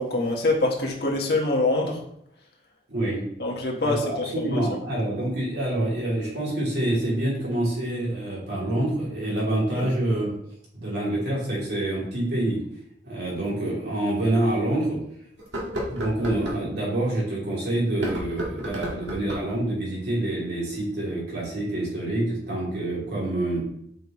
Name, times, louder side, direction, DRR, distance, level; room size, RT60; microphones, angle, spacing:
voice 1, 0.0-2.0 3.4-4.8 9.7-9.9, left 2 dB, 60° left, 0 dB, 1.5 m, -25 dB
voice 2, 2.9-3.2 3.8-10.3 10.7-12.6 13.0-15.0 15.9-23.6, right 1 dB, 65° right, -6 dB, 3.1 m, -26 dB
sound 1, 13.4-13.5 14.1-14.2 15.4-16.6 17.9-19.6, equal, 80° right, 1.9 m, -32 dB
7.8 x 5.4 x 3.2 m, 0.72 s
head